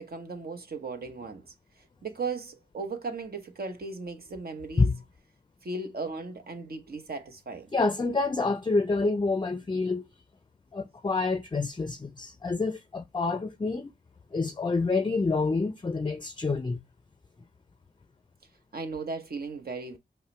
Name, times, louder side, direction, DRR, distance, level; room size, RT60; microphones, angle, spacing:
voice 1, 0.0-1.5 2.0-4.9 5.6-7.7 18.7-20.0, right 3 dB, 55° right, 1.0 m, -36 dB
voice 2, 7.7-10.0 10.7-13.9 14.3-16.8, left 3 dB, 25° left, 0.5 m, -27 dB
5.5 x 2.1 x 3.2 m
supercardioid pair, 40°, 19 cm